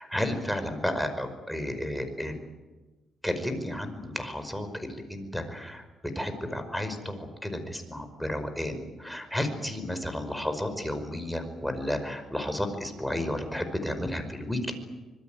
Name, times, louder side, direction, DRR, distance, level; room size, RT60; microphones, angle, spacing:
voice 1, 0.0-2.4 3.2-5.8 6.1-14.7, left 1 dB, ahead, 7 dB, 5.2 m, -32 dB
25.5 x 22.0 x 9.2 m, 1.2 s
cardioid pair, 90°, 0 cm